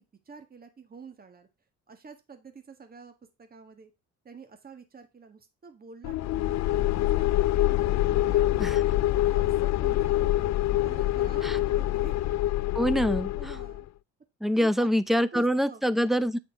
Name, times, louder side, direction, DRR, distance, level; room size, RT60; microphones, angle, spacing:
voice 1, 0.0-1.5 1.9-3.1 3.4-3.9 4.2-10.5 10.8-12.2 13.4-13.9 14.5-14.9 15.1-16.1, right 4 dB, 30° right, 1.5 m, -48 dB
sound 1, 6.0-13.8, left 14 dB, 65° left, 0.4 m, -25 dB
voice 2, 12.7-13.6 14.4-16.4, equal, ahead, 0.6 m, -25 dB
8.5 x 5.0 x 4.5 m
cardioid pair, 90°, 30 cm